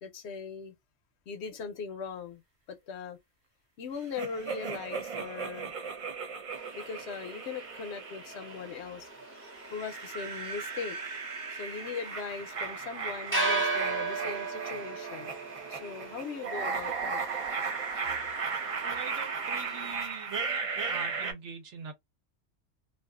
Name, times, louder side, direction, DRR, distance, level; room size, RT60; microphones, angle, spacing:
voice 1, 0.0-0.7 1.3-2.4 2.7-3.2 3.8-5.7 6.7-9.1 9.7-11.0 11.5-15.3 15.7-17.2, left 5 dB, 70° left, 0.8 m, -39 dB
sound 1, 4.2-8.9 9.4-21.3, right 5 dB, 55° right, 0.4 m, -36 dB
sound 2, 6.5-19.9, right 3 dB, 10° right, 0.7 m, -38 dB
voice 2, 18.8-20.3 20.9-21.9, right 6 dB, 70° right, 1.1 m, -43 dB
2.5 x 2.3 x 2.3 m
omnidirectional pair, 1.3 m